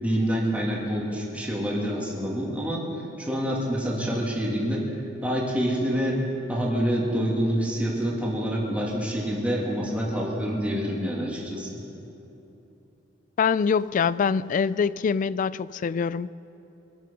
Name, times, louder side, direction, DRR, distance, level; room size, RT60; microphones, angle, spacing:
voice 1, 0.0-2.9 3.2-4.9 5.2-11.8, equal, 5° right, -4 dB, 2.8 m, -27 dB
voice 2, 13.4-16.3, left 6 dB, 45° left, 19 dB, 0.3 m, -24 dB
25.0 x 9.5 x 6.0 m, 3.0 s
head